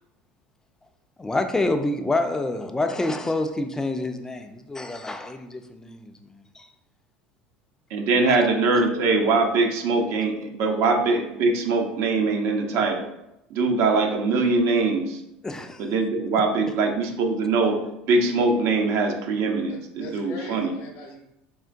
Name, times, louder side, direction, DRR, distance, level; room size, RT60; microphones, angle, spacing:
voice 1, 1.2-6.1 6.5-6.7 15.4-15.8, left 2 dB, 10° left, 6 dB, 0.4 m, -27 dB
voice 2, 7.9-13.1 13.5-15.2 15.8-17.8 18.1-20.7, right 3 dB, 60° right, 3 dB, 0.6 m, -22 dB
voice 3, 19.7-21.2, left 1 dB, 65° left, 2 dB, 0.8 m, -40 dB
3.7 x 2.1 x 2.5 m, 0.86 s
hypercardioid pair, 80°, 5 cm